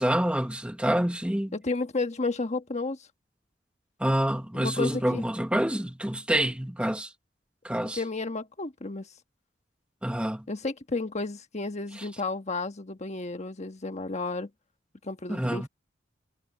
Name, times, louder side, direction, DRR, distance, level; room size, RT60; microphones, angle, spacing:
voice 1, 0.0-1.5 4.0-7.1 7.6-8.0 10.0-10.4 15.3-15.7, right 1 dB, 5° right, 1.2 m, -27 dB
voice 2, 1.5-3.1 4.5-5.2 7.8-9.1 10.5-14.5 15.0-15.7, left 3 dB, 35° left, 1.3 m, -32 dB
head